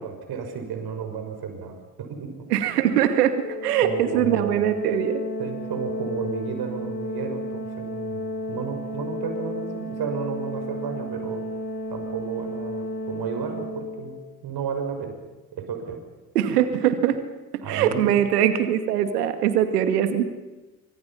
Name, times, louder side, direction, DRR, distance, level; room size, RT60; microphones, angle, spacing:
voice 1, 0.0-2.5 3.8-4.7 5.4-11.5 11.9-15.2 15.5-16.0 17.6-18.1, right 6 dB, 50° right, 5 dB, 6.1 m, -33 dB
voice 2, 2.5-3.3 3.6-5.2 16.3-17.2 17.7-20.2, right 10 dB, 75° right, 9 dB, 2.2 m, -22 dB
Organ, 3.4-14.3, equal, 25° left, 6.2 m, -33 dB
28.0 x 25.5 x 5.8 m, 1.1 s
hypercardioid pair, 55°, 46 cm